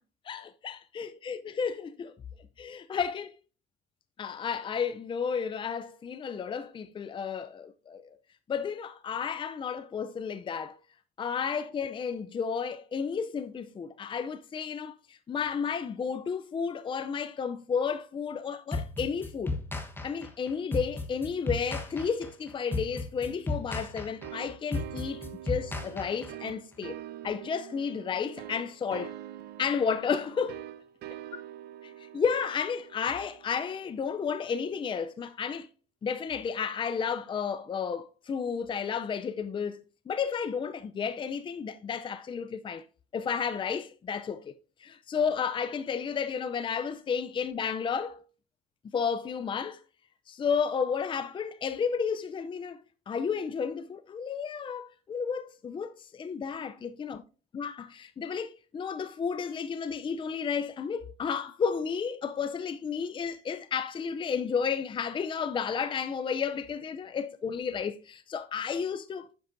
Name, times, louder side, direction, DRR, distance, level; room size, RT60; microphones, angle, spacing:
voice 1, 0.2-2.2 2.6-3.3 4.2-8.2 8.5-10.8 11.2-19.6 20.0-27.0 27.2-29.1 29.6-30.6 32.0-35.7 36.0-42.8 43.1-44.5 44.8-48.2 48.9-49.8 50.3-52.8 53.1-57.2 57.5-69.3, left 6 dB, 30° left, 0.5 m, -32 dB
sound 1, 18.7-26.5, left 3 dB, 15° left, 1.2 m, -34 dB
sound 2, 24.2-34.7, right 12 dB, 75° right, 0.7 m, -45 dB
10.0 x 7.9 x 2.6 m
cardioid pair, 110°, 17 cm